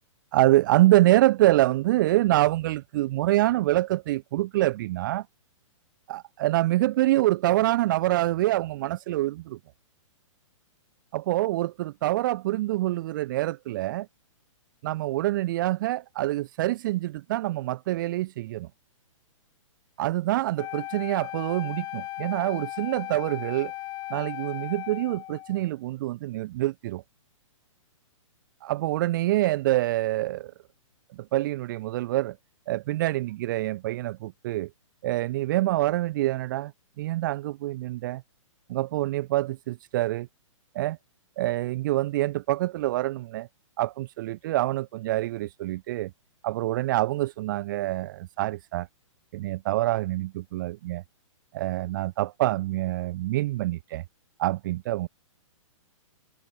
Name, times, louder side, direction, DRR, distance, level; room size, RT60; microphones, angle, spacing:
voice 1, 0.3-5.3 6.1-9.6 11.1-14.1 14.8-18.7 20.0-23.7 24.1-27.0 28.6-30.5 31.1-32.4 32.7-34.7 35.0-36.7 37.0-38.2 38.7-40.3 40.7-41.0 41.4-43.5 43.8-46.1 46.4-48.9 49.3-51.0 51.5-54.0 54.4-55.1, right 16 dB, 40° right, 0.4 m, -26 dB
Wind instrument woodwind instrument, 20.6-25.7, left 16 dB, 25° left, 3.5 m, -37 dB
hypercardioid pair, 150°, 17 cm